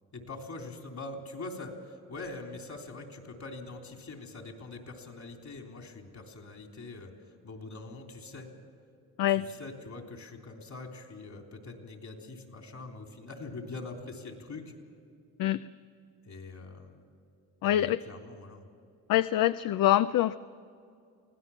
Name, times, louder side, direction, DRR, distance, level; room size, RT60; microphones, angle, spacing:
voice 1, 0.1-7.1 7.4-8.5 9.4-14.7 16.2-17.0 17.6-18.6, left 3 dB, 45° left, 3 dB, 3.6 m, -43 dB
voice 2, 17.6-18.0 19.1-20.4, left 13 dB, 65° left, 14 dB, 0.5 m, -25 dB
24.5 x 17.0 x 7.2 m, 2.5 s
cardioid pair, 90°, 37 cm